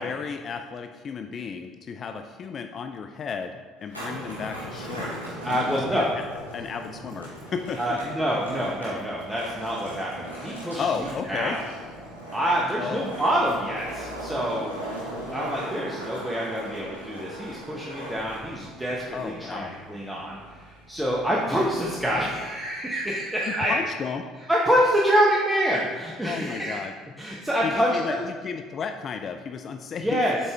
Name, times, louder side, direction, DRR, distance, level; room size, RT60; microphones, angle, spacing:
voice 1, 0.0-3.5 3.8-5.2 5.5-6.1 6.5-8.0 10.8-11.6 12.8-13.1 19.1-19.7 23.7-24.3 26.2-26.9 27.6-30.2, left 6 dB, 40° left, 6 dB, 0.3 m, -33 dB
Skateboard, 3.8-22.4, right 1 dB, 90° right, 1.7 m, -39 dB
voice 2, 5.4-6.1 7.8-10.8 11.3-11.6 12.3-14.7 15.3-23.7 24.5-26.8 27.2-28.2 30.0-30.4, equal, 10° right, -4 dB, 0.9 m, -26 dB
7.0 x 4.2 x 3.4 m, 1.5 s
figure-of-eight pair, 60°, 0 cm